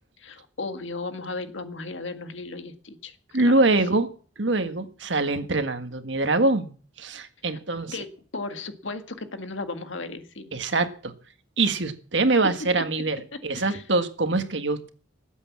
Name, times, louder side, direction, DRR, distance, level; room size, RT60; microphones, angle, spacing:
voice 1, 0.2-3.2 3.4-3.6 7.9-8.1 8.3-10.5 13.6-13.8, left 3 dB, 85° left, 8 dB, 1.8 m, -35 dB
voice 2, 3.3-4.1 4.4-8.0 10.5-11.1 11.6-14.9, right 2 dB, 70° right, 8 dB, 1.7 m, -24 dB
19.0 x 8.2 x 7.4 m, 0.42 s
head